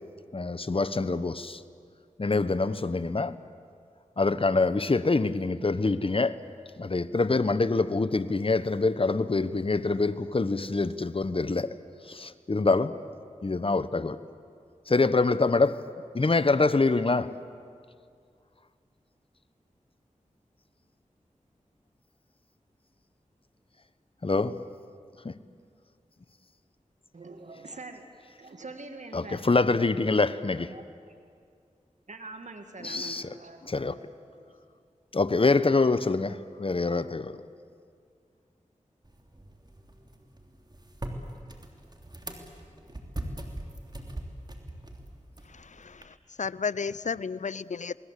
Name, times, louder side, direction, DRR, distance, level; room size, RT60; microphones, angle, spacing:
voice 1, 0.3-1.6 2.2-3.4 4.2-6.4 6.8-11.7 12.0-12.9 13.4-14.2 14.9-15.8 16.1-17.3 24.2-24.6 25.2-25.4 29.1-30.7 32.8-33.2 33.7-33.9 35.1-37.4, left 3 dB, 45° left, 1.0 m, -25 dB
voice 2, 27.1-28.1 28.4-29.7 30.6-30.8 32.1-34.1 34.4-34.5, right 3 dB, 65° right, 2.1 m, -44 dB
sound 1, 39.0-46.0, right 1 dB, 30° right, 3.3 m, -41 dB
voice 3, 45.5-48.0, left 5 dB, 65° left, 0.6 m, -33 dB
29.5 x 20.5 x 8.3 m
cardioid pair, 40°, 13 cm